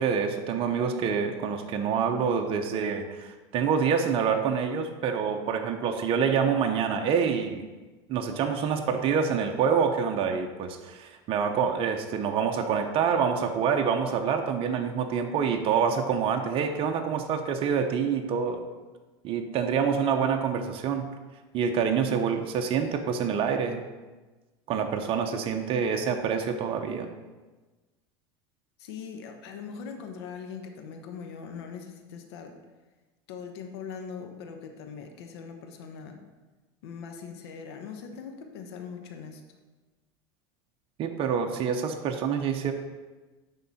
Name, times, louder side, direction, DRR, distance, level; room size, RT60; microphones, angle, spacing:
voice 1, 0.0-7.6 8.1-18.6 19.2-21.1 21.5-23.8 24.7-27.1 41.0-42.7, right 6 dB, 45° right, 4 dB, 0.7 m, -26 dB
voice 2, 28.8-32.5 33.3-36.2 36.8-39.4, left 6 dB, 75° left, 5 dB, 0.9 m, -41 dB
10.5 x 3.8 x 4.1 m, 1.2 s
supercardioid pair, 110°, 13 cm